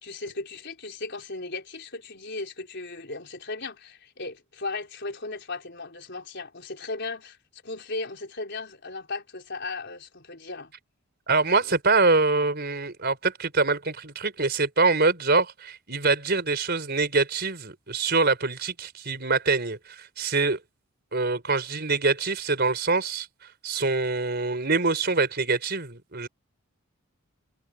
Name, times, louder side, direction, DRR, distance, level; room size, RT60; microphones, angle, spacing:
voice 1, 0.0-10.7, left 3 dB, 50° left, 4.8 m, -36 dB
voice 2, 11.3-20.6 21.1-23.3 23.6-26.3, right 3 dB, 45° right, 4.5 m, -24 dB
head